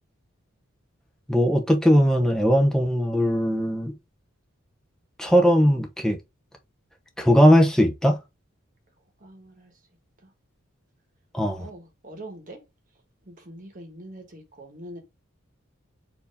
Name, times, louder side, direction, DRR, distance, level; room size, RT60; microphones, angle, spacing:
voice 1, 1.3-3.9 5.2-6.2 7.2-8.2 11.3-11.7, equal, 5° left, 0.7 m, -19 dB
voice 2, 9.2-9.7 10.2-10.3 11.6-12.6 13.2-15.0, right 1 dB, 40° right, 1.2 m, -43 dB
4.5 x 2.8 x 3.5 m
head